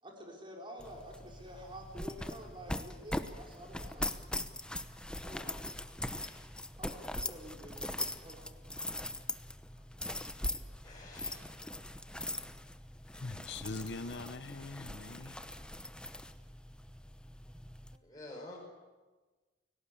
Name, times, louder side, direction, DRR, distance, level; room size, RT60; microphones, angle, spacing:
voice 1, 0.0-4.1 5.2-5.7 6.8-8.6 9.7-9.8 10.4-10.7 11.3-11.4 12.2-12.5 17.9-18.0, equal, 25° right, 4.8 m, -50 dB
sound 1, 0.8-18.0, left 1 dB, 5° left, 0.9 m, -41 dB
voice 2, 10.8-11.4 18.0-18.6, left 2 dB, 20° left, 5.1 m, -49 dB
voice 3, 13.1-15.4, left 3 dB, 65° left, 0.9 m, -42 dB
29.5 x 18.0 x 8.6 m
head